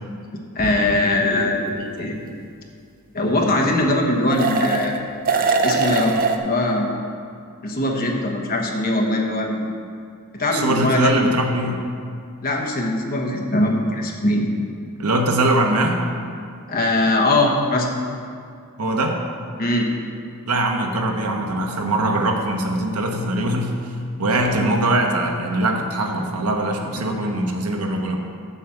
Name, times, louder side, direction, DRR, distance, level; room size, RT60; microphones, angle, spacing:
voice 1, 0.5-2.2 3.1-5.0 5.6-7.0 7.6-9.6 10.3-11.2 12.4-14.5 16.7-17.9 19.6-19.9, left 1 dB, 40° left, 0 dB, 1.2 m, -21 dB
sound 1, 0.6-0.7 4.3-5.0 5.3-6.4, right 4 dB, 40° right, 0.6 m, -21 dB
voice 2, 10.5-11.8 15.0-16.0 18.8-19.2 20.5-23.9 24.2-28.2, right 1 dB, 85° right, 3 dB, 1.0 m, -22 dB
7.0 x 6.0 x 7.0 m, 2.3 s
head